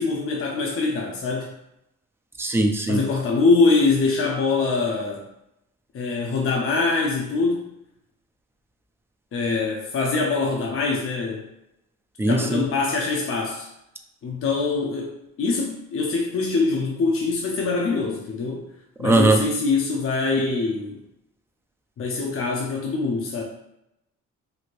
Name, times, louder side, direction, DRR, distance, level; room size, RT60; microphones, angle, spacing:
voice 1, 0.0-1.5 2.9-5.2 5.9-7.6 9.3-11.4 12.3-13.7 14.2-18.6 19.0-21.0 22.0-23.4, left 3 dB, 45° left, -1 dB, 0.6 m, -23 dB
voice 2, 2.4-3.0 12.2-12.6 19.0-19.4, right 2 dB, 10° right, 4 dB, 0.3 m, -19 dB
3.2 x 2.6 x 2.5 m, 0.85 s
cardioid pair, 90°, 30 cm